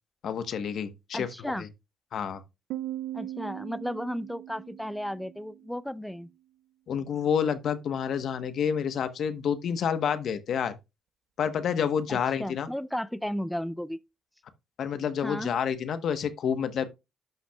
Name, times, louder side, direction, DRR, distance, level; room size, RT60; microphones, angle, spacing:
voice 1, 0.2-1.7 2.1-2.4 6.9-10.7 11.4-12.7 14.8-16.9, left 7 dB, 65° left, 1.0 m, -29 dB
voice 2, 1.1-1.7 3.1-6.3 12.1-14.0 15.2-15.5, equal, 5° left, 0.5 m, -34 dB
Piano, 2.7-6.1, right 14 dB, 90° right, 0.6 m, -40 dB
12.0 x 5.8 x 2.3 m
cardioid pair, 90°, 0 cm